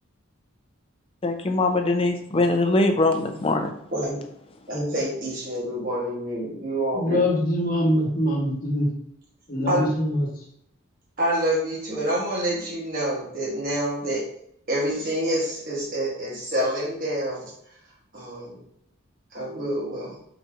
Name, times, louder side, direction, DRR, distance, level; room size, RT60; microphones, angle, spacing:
voice 1, 1.2-3.7, left 2 dB, 25° left, 6 dB, 0.4 m, -22 dB
voice 2, 4.7-7.2 9.7-9.9 11.2-14.2 14.7-17.5 18.1-18.6 19.3-20.1, right 1 dB, 40° right, -6 dB, 1.2 m, -27 dB
voice 3, 6.9-8.9 9.5-10.3, equal, 40° left, -2 dB, 1.2 m, -23 dB
4.0 x 2.7 x 4.6 m, 0.73 s
head